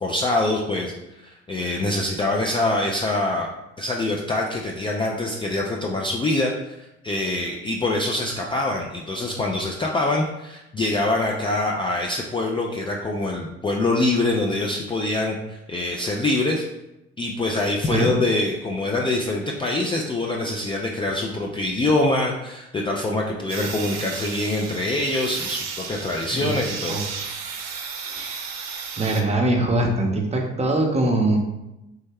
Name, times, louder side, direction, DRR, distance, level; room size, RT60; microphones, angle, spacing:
voice 1, 0.0-3.5 3.8-16.6 17.2-27.0, left 2 dB, 20° left, -1 dB, 0.3 m, -24 dB
sound 1, 23.5-29.2, right 5 dB, 60° right, 0.6 m, -33 dB
voice 2, 29.0-31.4, right 1 dB, 20° right, 1 dB, 0.7 m, -22 dB
3.2 x 2.1 x 3.4 m, 0.93 s
hypercardioid pair, 65°, 29 cm